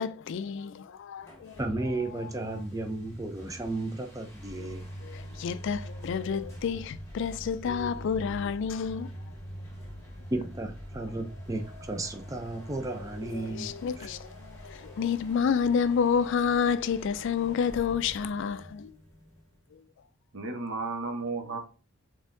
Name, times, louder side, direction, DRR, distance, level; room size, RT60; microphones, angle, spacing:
voice 1, 0.0-1.6 2.2-2.6 4.6-9.1 13.3-18.9, left 6 dB, 60° left, 0.3 m, -30 dB
sound 1, 1.2-19.7, equal, 15° left, 1.4 m, -44 dB
voice 2, 1.6-4.8 10.3-14.1, right 2 dB, 15° right, 0.4 m, -34 dB
voice 3, 20.3-21.6, right 3 dB, 65° right, 0.9 m, -33 dB
5.4 x 3.6 x 2.6 m
head